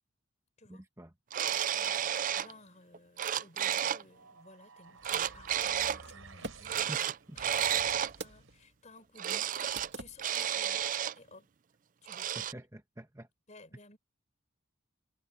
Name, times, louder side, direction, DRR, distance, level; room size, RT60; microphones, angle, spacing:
voice 1, 0.7-1.1 6.9-7.0 7.3-7.4 12.3-13.3, right 1 dB, 15° right, 1.3 m, -46 dB
sound 1, 1.3-2.5 2.9-4.0 5.0-6.0 6.6-8.1 9.2-9.9 10.2-11.1 12.1-12.5, right 9 dB, 40° right, 0.4 m, -32 dB
voice 2, 1.7-7.0 7.3-11.5 12.0-12.5 13.5-14.0, left 2 dB, 35° left, 4.6 m, -57 dB
sound 2, 4.1-8.7, right 4 dB, 80° right, 3.9 m, -53 dB
sound 3, 4.9-8.7 8.9-9.0 9.5-10.5, right 3 dB, 55° right, 2.9 m, -48 dB
head